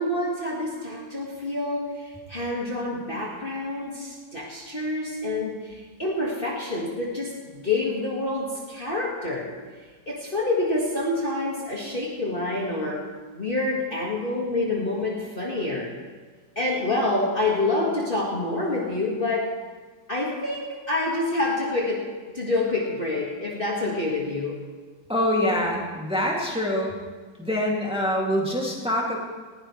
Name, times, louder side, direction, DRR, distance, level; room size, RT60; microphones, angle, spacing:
voice 1, 0.0-9.5 10.1-16.0 16.6-19.6 20.1-24.7, left 2 dB, 30° left, -4 dB, 2.0 m, -27 dB
voice 2, 25.1-27.0 27.4-29.2, left 1 dB, 5° right, -2 dB, 2.4 m, -25 dB
19.5 x 16.5 x 3.3 m, 1.4 s
omnidirectional pair, 1.9 m